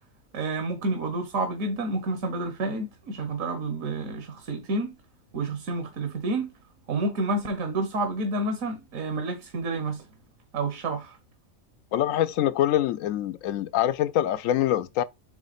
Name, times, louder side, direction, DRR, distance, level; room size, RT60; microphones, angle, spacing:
voice 1, 0.3-4.9 5.3-6.5 6.9-10.0 10.5-11.2, right 2 dB, 80° right, 1.5 m, -29 dB
voice 2, 11.9-15.0, left 12 dB, 80° left, 1.0 m, -24 dB
8.1 x 3.2 x 4.1 m
omnidirectional pair, 1.4 m